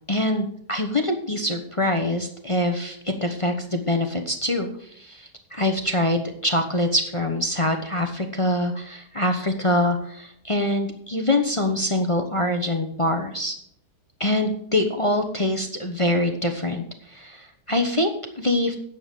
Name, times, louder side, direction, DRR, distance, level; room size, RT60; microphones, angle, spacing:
voice 1, 0.1-13.6 14.2-18.8, left 1 dB, 25° left, 5 dB, 0.7 m, -24 dB
10.5 x 7.2 x 6.7 m, 0.67 s
omnidirectional pair, 1.8 m